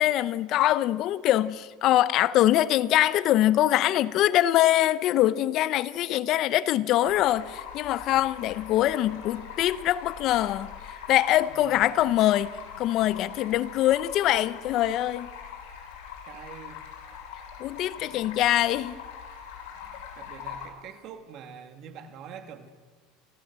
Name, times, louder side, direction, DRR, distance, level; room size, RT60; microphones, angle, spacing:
voice 1, 0.0-10.7 11.1-12.5 12.8-15.3 17.6-19.0, left 13 dB, 45° left, 0.7 m, -23 dB
Stream, 7.0-20.7, left 8 dB, 80° left, 7.0 m, -42 dB
voice 2, 16.2-16.8 18.0-18.3 19.8-22.7, right 7 dB, 45° right, 2.3 m, -45 dB
28.5 x 15.0 x 7.5 m
supercardioid pair, 140°, 0 cm